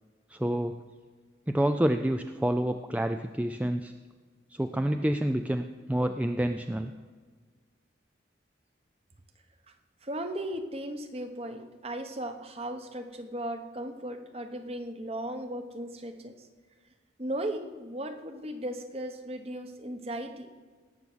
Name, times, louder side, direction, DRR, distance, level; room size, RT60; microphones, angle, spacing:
voice 1, 0.3-0.8 1.5-3.9 4.5-6.9, right 1 dB, 10° right, 7 dB, 0.3 m, -28 dB
voice 2, 10.0-16.5 17.2-20.5, right 1 dB, 35° right, 7 dB, 1.1 m, -36 dB
18.0 x 6.8 x 6.2 m, 1.5 s
head